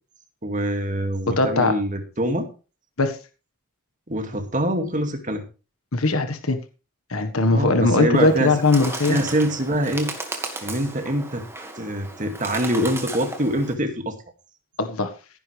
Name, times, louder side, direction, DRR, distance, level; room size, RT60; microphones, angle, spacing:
voice 1, 0.4-2.5 4.1-5.4 7.5-8.5 9.1-10.1 10.6-11.4 11.8-14.2, right 1 dB, 35° right, 5 dB, 2.2 m, -24 dB
voice 2, 1.4-1.7 3.0-3.2 5.9-6.6 7.1-9.2 14.8-15.1, left 2 dB, 75° left, 8 dB, 1.5 m, -20 dB
Bird, 8.1-13.7, right 2 dB, 10° right, 1.9 m, -35 dB
16.5 x 10.0 x 3.4 m, 0.33 s
head